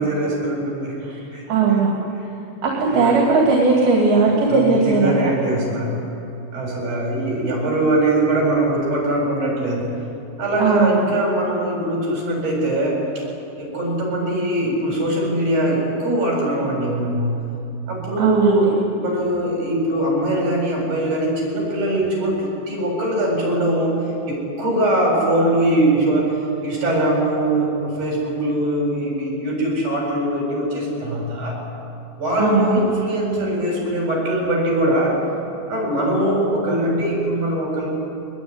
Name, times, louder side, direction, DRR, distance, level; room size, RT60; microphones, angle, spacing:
voice 1, 0.0-1.0 1.3-1.4 2.8-3.4 4.5-6.0 6.5-9.9 10.4-13.0 13.6-17.4 17.9-18.7 19.0-23.9 24.3-26.3 26.6-31.6 32.2-35.2 35.7-37.9, right 1 dB, 50° right, -2 dB, 9.0 m, -21 dB
voice 2, 1.0-1.9 2.6-5.3 10.6-11.0 18.2-18.7 32.4-32.8, right 4 dB, 75° right, -2 dB, 4.7 m, -18 dB
22.0 x 21.0 x 10.0 m, 2.7 s
omnidirectional pair, 4.4 m